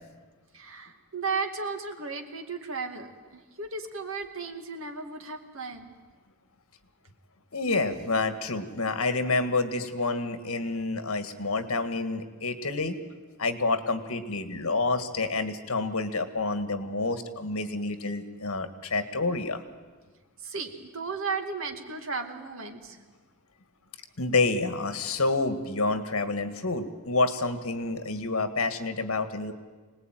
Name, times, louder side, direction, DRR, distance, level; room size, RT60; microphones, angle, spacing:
voice 1, 0.5-5.9 20.4-23.0, right 4 dB, 65° right, 5 dB, 2.3 m, -35 dB
voice 2, 7.5-13.0 13.4-19.6 24.2-29.5, left 3 dB, 75° left, 9 dB, 1.8 m, -28 dB
25.5 x 19.5 x 9.2 m, 1.4 s
head